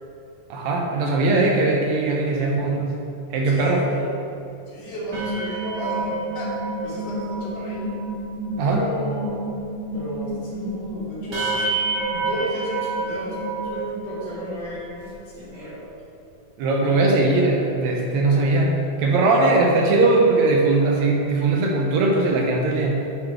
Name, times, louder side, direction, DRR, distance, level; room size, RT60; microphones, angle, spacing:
voice 1, 0.5-3.0 3.3-3.8 8.6-8.8 16.6-23.1, right 2 dB, 75° right, 0 dB, 1.9 m, -20 dB
voice 2, 3.4-4.1 4.7-6.5 6.8-7.9 8.7-9.4 9.9-11.5 12.1-15.9, equal, 80° left, -7 dB, 3.2 m, -33 dB
sound 1, 5.0-14.5 14.9-15.1 15.4-15.7, right 2 dB, 40° right, 1.4 m, -28 dB
8.8 x 3.8 x 4.6 m, 2.6 s
omnidirectional pair, 3.5 m